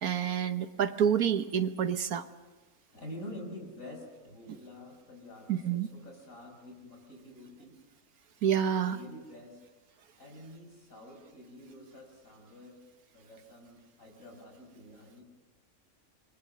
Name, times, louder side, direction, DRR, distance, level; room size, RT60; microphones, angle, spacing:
voice 1, 0.0-2.2 5.5-5.9 8.4-9.0, right 8 dB, 90° right, 10 dB, 1.6 m, -28 dB
voice 2, 2.9-7.8 8.6-9.6 10.2-12.8 13.1-15.2, left 1 dB, 65° left, 2 dB, 6.0 m, -48 dB
28.0 x 23.5 x 6.3 m, 1.2 s
omnidirectional pair, 1.5 m